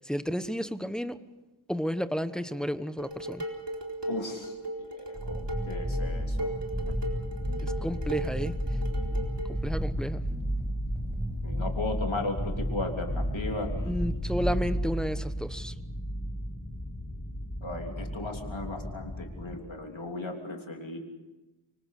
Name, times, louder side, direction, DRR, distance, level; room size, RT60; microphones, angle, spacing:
voice 1, 0.0-1.2 1.7-3.5 7.6-8.6 9.5-10.2 13.8-15.7, equal, ahead, 1.1 m, -32 dB
Dishes pots and pans, 3.0-9.6, right 1 dB, 60° right, 4.3 m, -37 dB
voice 2, 4.1-5.4 5.7-6.5 11.4-14.0 17.6-21.0, left 2 dB, 75° left, 3.4 m, -36 dB
sound 1, 5.1-14.8, equal, 20° right, 7.0 m, -33 dB
sound 2, 5.3-19.6, equal, 20° left, 5.5 m, -36 dB
25.5 x 24.5 x 6.7 m
wide cardioid pair, 60°, 47 cm